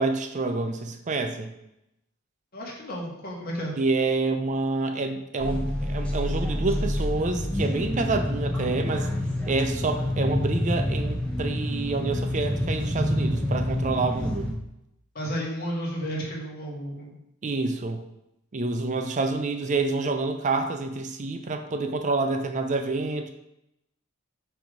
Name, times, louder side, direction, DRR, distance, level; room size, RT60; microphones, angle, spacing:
voice 1, 0.0-1.5 3.8-9.1 9.5-14.5 17.4-18.0 18.5-23.3, right 3 dB, 35° right, 7 dB, 0.5 m, -28 dB
voice 2, 2.5-3.7 15.2-17.2, equal, 45° left, -3 dB, 1.7 m, -32 dB
sound 1, 5.4-14.5, left 1 dB, 5° left, 1.0 m, -27 dB
5.9 x 3.4 x 5.1 m, 0.84 s
head